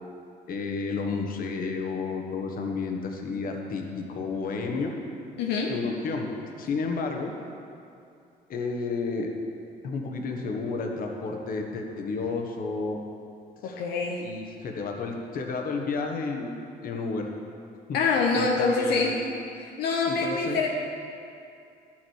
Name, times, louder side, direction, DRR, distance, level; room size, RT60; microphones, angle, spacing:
voice 1, 0.5-4.9 5.7-6.3 6.6-7.3 8.5-9.3 9.8-13.0 13.6-13.9 14.2-16.5 16.8-17.3 18.3-19.1 20.0-20.6, left 4 dB, 55° left, 2 dB, 1.4 m, -31 dB
voice 2, 5.4-5.7 13.6-14.2 17.9-19.2 19.6-20.7, left 4 dB, 80° left, 0 dB, 1.0 m, -25 dB
12.0 x 7.5 x 4.7 m, 2.6 s
cardioid pair, 110°, 17 cm